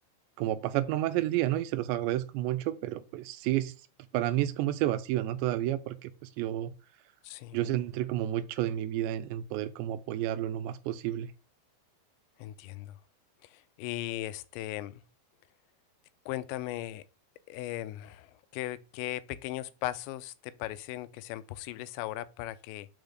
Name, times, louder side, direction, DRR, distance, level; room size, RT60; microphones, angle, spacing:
voice 1, 0.4-3.7 4.1-6.7 7.5-11.3, right 13 dB, 85° right, 2.8 m, -30 dB
voice 2, 7.2-7.6 12.4-13.0 13.4-15.0 16.3-17.0 17.5-22.9, left 14 dB, 85° left, 2.8 m, -38 dB
6.3 x 5.2 x 6.3 m
omnidirectional pair, 5.1 m